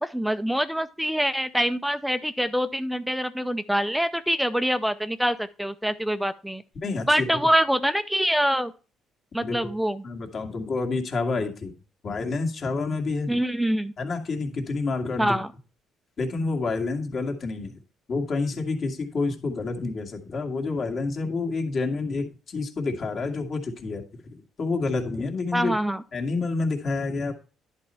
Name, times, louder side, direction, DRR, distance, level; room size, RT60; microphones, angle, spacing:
voice 1, 0.0-6.6 7.1-8.7 9.3-10.0 13.3-13.9 15.2-15.5 25.5-26.0, equal, ahead, 12 dB, 0.4 m, -25 dB
voice 2, 6.8-7.4 9.4-9.7 10.0-11.7 12.0-13.4 14.0-15.4 16.2-17.8 18.1-25.7 26.1-27.3, left 3 dB, 45° left, 2 dB, 1.9 m, -28 dB
10.5 x 4.3 x 5.5 m, 0.34 s
cardioid pair, 125°, 0 cm